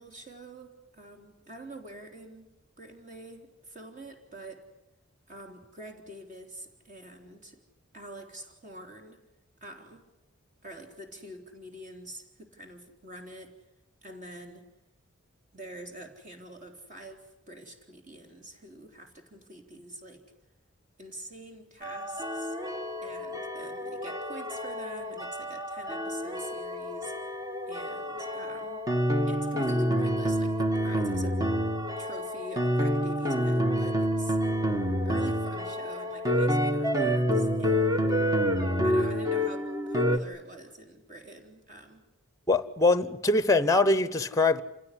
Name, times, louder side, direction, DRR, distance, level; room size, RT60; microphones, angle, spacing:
voice 1, 0.0-2.5 2.8-4.7 5.3-7.6 7.9-9.2 9.6-10.1 10.6-13.6 14.0-14.7 15.5-20.3 21.0-22.6 23.0-27.1 27.7-28.9 29.3-31.4 32.0-34.4 35.0-38.2 38.8-42.0, right 1 dB, 35° right, 3.6 m, -46 dB
sound 1, 21.8-40.2, equal, 15° right, 1.2 m, -28 dB
voice 2, 42.5-44.6, left 2 dB, 15° left, 0.9 m, -23 dB
28.0 x 16.5 x 10.0 m
head